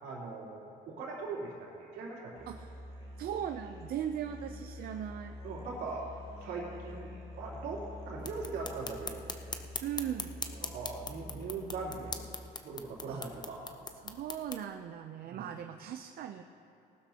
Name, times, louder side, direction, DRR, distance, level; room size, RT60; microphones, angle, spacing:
voice 1, 0.0-2.5 5.4-6.1 6.4-9.7 10.6-12.2 12.6-13.7 15.2-15.5, right 4 dB, 80° right, -4 dB, 3.3 m, -41 dB
Musical instrument, 2.4-12.5, left 1 dB, 35° right, 2.3 m, -47 dB
voice 2, 3.2-5.4 9.8-10.3 13.1-13.2 14.0-16.4, right 9 dB, 65° right, 6 dB, 0.6 m, -38 dB
sound 1, 8.2-14.6, left 4 dB, 25° left, 0.8 m, -42 dB
19.0 x 12.0 x 2.9 m, 2.9 s
cardioid pair, 110°, 17 cm